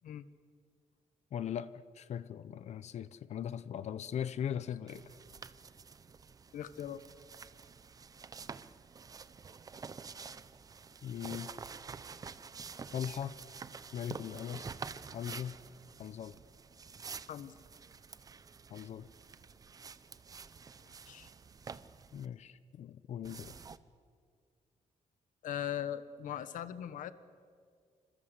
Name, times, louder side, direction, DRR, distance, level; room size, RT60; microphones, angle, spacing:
voice 1, 1.3-5.1 11.0-11.5 12.9-13.4 13.9-14.7 15.1-15.6 16.0-16.4 18.7-19.1 22.1-23.5, left 9 dB, 55° left, 0.8 m, -39 dB
sound 1, 4.9-22.3 23.2-23.8, right 5 dB, 25° right, 0.8 m, -48 dB
voice 2, 6.5-7.0 17.3-17.5 21.1-21.3 25.4-27.1, left 10 dB, 80° left, 1.3 m, -39 dB
28.0 x 25.5 x 8.1 m
wide cardioid pair, 175°, 13 cm